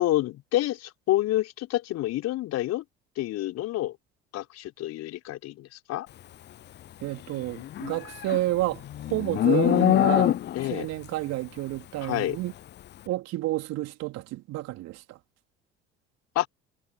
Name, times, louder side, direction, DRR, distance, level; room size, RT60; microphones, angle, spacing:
voice 1, 0.0-2.8 3.2-3.9 4.3-6.1 10.5-10.9 12.0-12.4 16.3-16.5, left 15 dB, 55° left, 5.1 m, -28 dB
voice 2, 7.0-10.4 10.7-12.5 13.1-15.2, right 17 dB, 60° right, 3.8 m, -30 dB
Livestock farm animals working animals, 7.6-10.8, left 12 dB, 35° left, 0.6 m, -24 dB
figure-of-eight pair, 55°, 30 cm